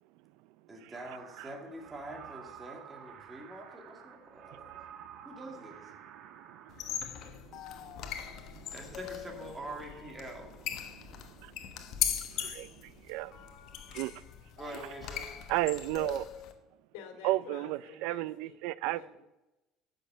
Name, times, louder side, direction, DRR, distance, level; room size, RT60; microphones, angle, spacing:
voice 1, 0.7-4.7 5.2-5.9 8.7-10.6 14.6-15.3, right 1 dB, 15° right, 2.2 m, -45 dB
sound 1, 0.9-7.0, right 8 dB, 55° right, 1.4 m, -51 dB
voice 2, 6.4-7.0 7.3-7.6 7.9-8.7 11.1-11.5 12.1-13.3 13.9-14.1 15.5-16.3 17.2-19.0, right 17 dB, 80° right, 0.4 m, -35 dB
sound 2, 6.7-16.5, left 10 dB, 55° left, 1.2 m, -39 dB
voice 3, 16.9-18.6 18.8-19.3, left 6 dB, 85° left, 2.3 m, -50 dB
10.5 x 6.5 x 6.7 m
cardioid pair, 130°, 0 cm